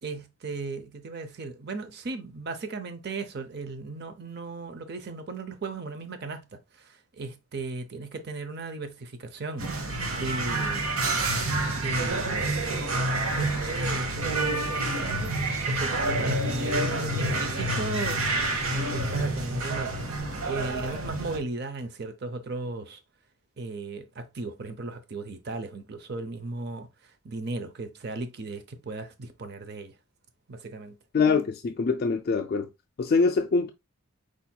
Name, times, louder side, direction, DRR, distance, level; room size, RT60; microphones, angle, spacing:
voice 1, 0.0-9.7 10.1-10.9 11.7-12.6 13.3-15.4 15.7-18.3 18.6-23.0 23.6-26.9 27.2-29.9 30.5-31.0, right 3 dB, 50° right, 0.6 m, -36 dB
sound 1, 9.6-21.4, right 2 dB, 85° right, 1.1 m, -28 dB
voice 2, 31.1-32.7 33.0-33.7, left 4 dB, 45° left, 0.3 m, -24 dB
4.7 x 4.3 x 2.3 m
head